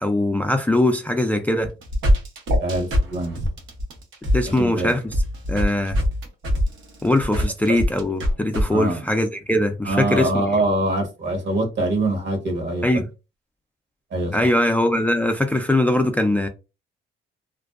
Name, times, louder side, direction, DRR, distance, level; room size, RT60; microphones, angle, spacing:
voice 1, 0.0-1.7 4.3-5.0 5.5-6.0 7.0-10.4 12.8-13.1 14.3-16.5, left 1 dB, 10° left, 0.3 m, -21 dB
sound 1, 1.6-8.6, equal, 80° right, 0.8 m, -23 dB
voice 2, 2.6-3.4 4.4-4.9 8.7-9.0 9.8-13.0 14.1-14.5, right 2 dB, 60° right, 1.2 m, -24 dB
2.5 x 2.1 x 2.4 m
cardioid pair, 90°, 20 cm